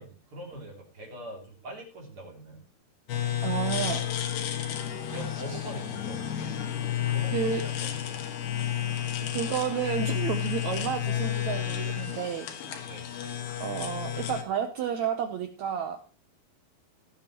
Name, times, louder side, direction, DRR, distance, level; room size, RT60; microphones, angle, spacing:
voice 1, 0.0-2.6 3.8-4.1 5.1-6.5 7.1-8.3 12.9-13.1, right 1 dB, 40° right, 0 dB, 3.4 m, -43 dB
sound 1, 3.1-14.4, left 11 dB, 80° left, 3.4 m, -31 dB
voice 2, 3.4-4.0 5.5-5.6 7.3-7.6 9.3-12.5 13.6-16.0, right 8 dB, 80° right, 7 dB, 1.6 m, -31 dB
17.5 x 8.9 x 3.0 m, 0.34 s
omnidirectional pair, 4.4 m